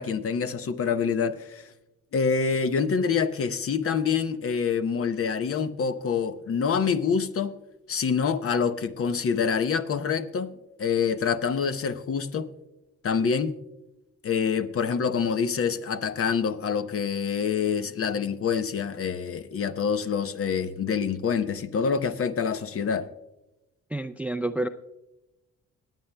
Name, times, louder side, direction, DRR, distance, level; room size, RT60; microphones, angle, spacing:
voice 1, 0.0-1.7 2.1-7.5 7.9-12.5 13.0-13.6 14.2-23.1, left 6 dB, 50° left, 0.8 m, -26 dB
voice 2, 23.9-24.7, right 2 dB, 5° right, 0.4 m, -29 dB
25.5 x 9.0 x 2.2 m
cardioid pair, 90°, 30 cm